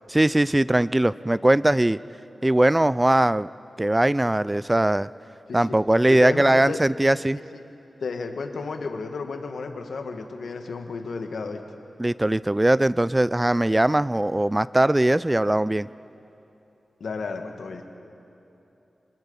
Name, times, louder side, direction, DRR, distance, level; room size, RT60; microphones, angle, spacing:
voice 1, 0.1-2.0 2.4-3.5 3.8-5.1 5.5-7.4 12.0-15.9, right 1 dB, 20° right, 18 dB, 0.4 m, -20 dB
voice 2, 6.1-6.8 7.5-7.6 8.0-11.6 17.0-17.8, left 4 dB, 85° left, 5 dB, 1.5 m, -32 dB
26.5 x 20.0 x 5.5 m, 2.9 s
cardioid pair, 55°, 0 cm